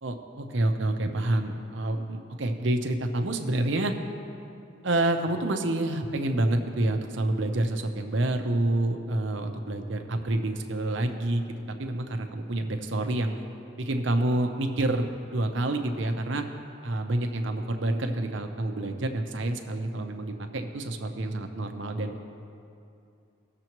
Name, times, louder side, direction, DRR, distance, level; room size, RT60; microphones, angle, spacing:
voice 1, 0.0-3.9 4.8-11.4 11.8-13.3 13.8-15.1 15.3-16.4 16.8-22.1, right 1 dB, 65° right, 5 dB, 0.8 m, -28 dB
18.5 x 6.9 x 3.0 m, 2.6 s
head